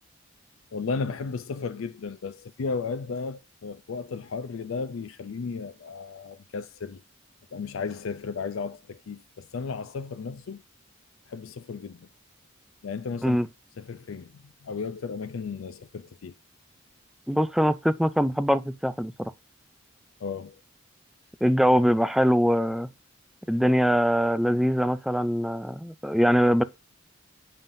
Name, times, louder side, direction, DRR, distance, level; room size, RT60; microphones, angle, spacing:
voice 1, 0.7-7.0 7.5-10.6 11.3-12.1 12.8-13.4 13.8-16.3 20.2-20.6, left 5 dB, 80° left, 0.4 m, -34 dB
voice 2, 17.3-19.3 21.4-22.9 23.5-26.6, equal, ahead, 0.4 m, -23 dB
7.1 x 5.6 x 2.6 m
head